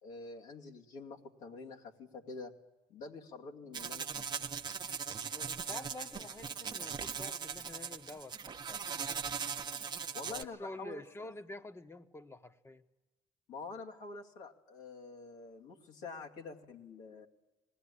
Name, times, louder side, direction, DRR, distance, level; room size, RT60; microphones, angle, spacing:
voice 1, 0.0-2.5 2.9-4.3 6.0-6.1 10.1-11.3 13.5-17.3, left 3 dB, 70° left, -1 dB, 2.4 m, -47 dB
sound 1, 3.7-10.4, right 6 dB, 35° right, 1.1 m, -40 dB
voice 2, 5.3-8.9 9.3-9.4 10.3-12.8, left 2 dB, 20° left, 10 dB, 1.3 m, -48 dB
20.0 x 16.0 x 9.9 m, 1.1 s
supercardioid pair, 75°, 13 cm